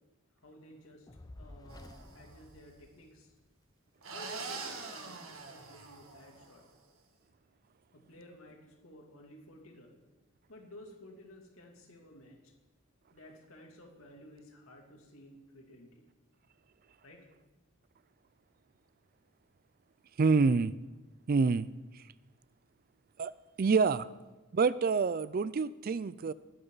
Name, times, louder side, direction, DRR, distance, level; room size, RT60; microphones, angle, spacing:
voice 1, 0.4-1.1 1.4-3.3 4.0-6.6 7.9-10.0 10.5-12.5 13.1-16.0 17.0-17.3, left 1 dB, 80° left, 1 dB, 2.8 m, -54 dB
Fire, 1.1-3.5, left 1 dB, 20° left, 0.5 m, -52 dB
sound 1, 1.7-2.4 4.0-6.6, right 4 dB, 75° right, 1.9 m, -44 dB
voice 2, 20.2-20.7 21.3-21.7 23.2-23.3 23.6-24.1 24.5-26.3, right 4 dB, 45° right, 18 dB, 0.4 m, -27 dB
20.0 x 11.0 x 4.0 m, 1.1 s
head